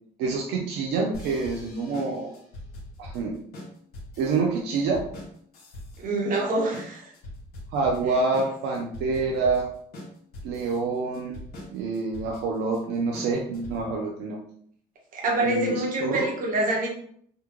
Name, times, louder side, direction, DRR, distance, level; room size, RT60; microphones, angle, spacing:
voice 1, 0.2-2.3 3.0-3.4 4.2-5.0 7.7-9.7 10.4-11.3 11.7-14.4 15.4-16.3, right 4 dB, 85° right, -1 dB, 0.6 m, -27 dB
sound 1, 1.1-14.0, left 1 dB, 70° left, 1.4 m, -42 dB
voice 2, 6.0-7.1 15.1-16.9, right 2 dB, 55° right, -1 dB, 1.1 m, -26 dB
3.7 x 2.2 x 3.0 m, 0.62 s
cardioid pair, 110°, 17 cm